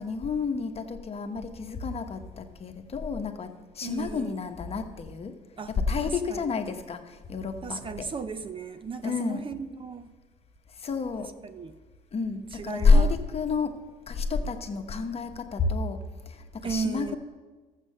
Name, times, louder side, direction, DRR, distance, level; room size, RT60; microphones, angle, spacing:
voice 1, 0.0-5.3 5.7-8.1 9.0-9.4 10.8-11.3 12.1-13.8 14.1-16.0 16.3-17.2, left 4 dB, 35° left, 1.1 m, -28 dB
voice 2, 3.8-4.4 5.6-6.6 7.6-10.1 11.2-11.7 12.5-13.2 16.6-17.2, right 5 dB, 30° right, 0.6 m, -36 dB
13.0 x 7.5 x 6.5 m
cardioid pair, 110°, 17 cm